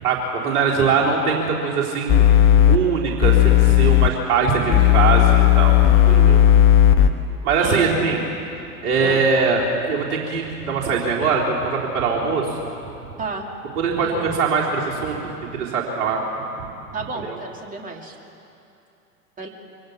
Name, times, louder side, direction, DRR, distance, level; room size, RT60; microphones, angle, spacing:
voice 1, 0.0-2.2 2.6-5.8 6.1-6.4 7.4-8.2 8.8-12.6 13.8-16.2 17.3-17.4, right 5 dB, 50° right, -3 dB, 4.0 m, -22 dB
sound 1, 2.1-2.8 3.2-4.1 4.7-7.1, left 12 dB, 25° left, 1.3 m, -14 dB
voice 2, 6.0-6.4 7.6-8.2 9.0-9.2 13.2-13.5 14.0-14.3 16.9-18.2 19.4-19.5, right 3 dB, 20° right, 2 dB, 2.7 m, -32 dB
24.5 x 17.5 x 8.8 m, 2.8 s
figure-of-eight pair, 95°, 45 cm